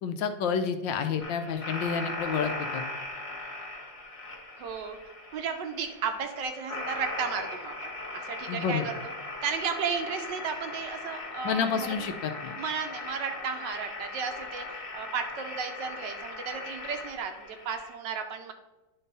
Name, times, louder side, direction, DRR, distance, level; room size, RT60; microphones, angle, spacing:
voice 1, 0.0-2.8 8.5-8.8 11.4-12.5, left 6 dB, 75° left, 8 dB, 1.2 m, -29 dB
sound 1, 1.2-17.9, left 2 dB, 30° left, 1.3 m, -39 dB
voice 2, 4.6-5.0 5.3-9.1 9.4-12.1 12.6-14.7 14.9-18.5, right 6 dB, 70° right, 6 dB, 1.2 m, -34 dB
10.0 x 3.8 x 4.0 m, 1.1 s
omnidirectional pair, 2.2 m